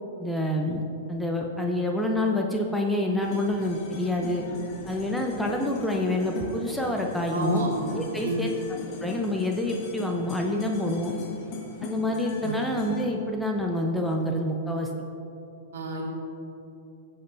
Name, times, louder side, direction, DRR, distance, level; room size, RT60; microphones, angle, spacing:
voice 1, 0.2-0.8 1.1-4.4 4.9-7.6 7.9-8.5 9.0-11.1 11.8-14.9, left 1 dB, ahead, 0 dB, 0.9 m, -27 dB
sound 1, 3.2-13.1, left 4 dB, 40° left, 1.8 m, -40 dB
voice 2, 7.3-7.7 8.2-8.5 12.4-12.5 15.7-16.0, right 1 dB, 65° right, -1 dB, 2.1 m, -29 dB
15.5 x 7.9 x 2.8 m, 2.8 s
figure-of-eight pair, 105°, 0 cm